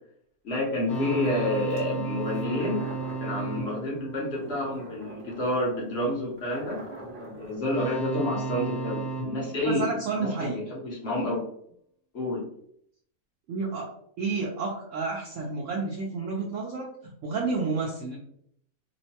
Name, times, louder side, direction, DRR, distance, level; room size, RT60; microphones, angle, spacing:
voice 1, 0.4-2.8 3.2-6.8 7.2-11.4 12.1-12.4, left 1 dB, 55° left, -3 dB, 1.0 m, -29 dB
sound 1, 0.9-5.3 7.6-10.9, right 4 dB, 80° left, 1.2 m, -35 dB
sound 2, 0.9-1.9 2.3-7.6, right 1 dB, 35° right, 0.7 m, -43 dB
voice 2, 9.6-10.6 13.5-13.9 14.2-18.2, right 4 dB, 70° right, -2 dB, 0.8 m, -30 dB
3.0 x 2.1 x 2.7 m, 0.68 s
omnidirectional pair, 1.5 m